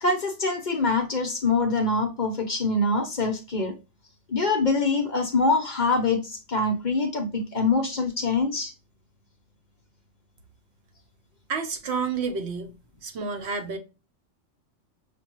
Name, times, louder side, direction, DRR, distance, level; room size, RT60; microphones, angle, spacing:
voice 1, 0.0-3.7 4.3-8.7, left 3 dB, 45° left, 0.7 m, -24 dB
voice 2, 11.5-12.7 13.0-13.8, right 5 dB, 65° right, 1.0 m, -29 dB
5.8 x 2.2 x 2.9 m
omnidirectional pair, 1.2 m